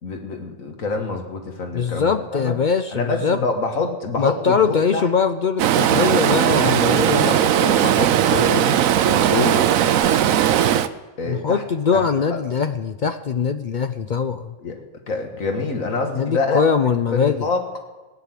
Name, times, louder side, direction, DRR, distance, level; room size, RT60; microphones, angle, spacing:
voice 1, 0.0-2.5 2.9-5.1 7.1-8.7 9.1-9.7 11.2-11.6 11.9-12.0 12.3-12.4 14.6-16.7 17.1-17.6, left 4 dB, 80° left, 3 dB, 2.0 m, -26 dB
voice 2, 1.7-3.4 4.2-7.3 11.2-14.5 16.1-17.5, left 6 dB, 55° left, 9 dB, 0.5 m, -22 dB
Stream, 5.6-10.9, right 10 dB, 80° right, 1.1 m, -18 dB
16.0 x 9.8 x 7.6 m, 1.2 s
omnidirectional pair, 1.4 m